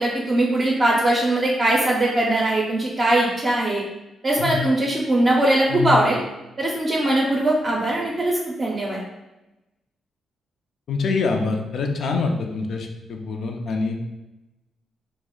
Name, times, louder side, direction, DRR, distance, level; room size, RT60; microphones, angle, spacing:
voice 1, 0.0-3.8 4.2-6.2 6.6-9.0, right 1 dB, 35° right, -3 dB, 0.5 m, -21 dB
voice 2, 5.7-6.0 10.9-14.1, left 4 dB, 70° left, 3 dB, 0.4 m, -25 dB
2.4 x 2.0 x 3.6 m, 0.99 s
cardioid pair, 65°, 0 cm